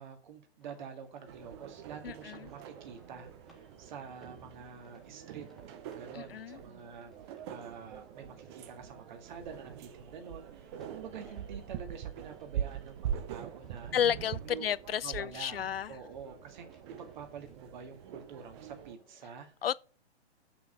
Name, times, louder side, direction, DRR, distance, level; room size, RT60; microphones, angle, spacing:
voice 1, 0.0-5.5 5.9-13.9 14.4-14.7 15.0-15.6 15.9-19.5, right 6 dB, 40° right, 2.0 m, -47 dB
sound 1, 0.6-19.3, equal, ahead, 1.4 m, -62 dB
sound 2, 1.3-18.9, right 9 dB, 25° right, 0.7 m, -44 dB
voice 2, 2.0-2.5 6.1-6.6 13.9-15.9 19.6-19.8, left 9 dB, 60° left, 0.5 m, -32 dB
7.0 x 6.0 x 6.5 m
figure-of-eight pair, 120°, 34 cm